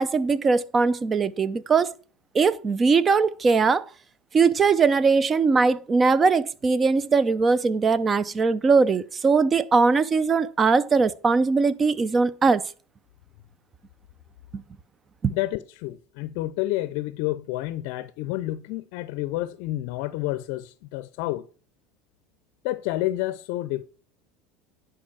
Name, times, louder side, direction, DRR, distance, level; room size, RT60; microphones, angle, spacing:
voice 1, 0.0-1.9 2.3-3.9 4.3-12.6 15.2-15.3, right 4 dB, 30° right, 0.7 m, -20 dB
voice 2, 15.3-21.5 22.6-23.8, left 16 dB, 65° left, 0.5 m, -29 dB
10.5 x 4.9 x 6.2 m
hypercardioid pair, 85°, 0 cm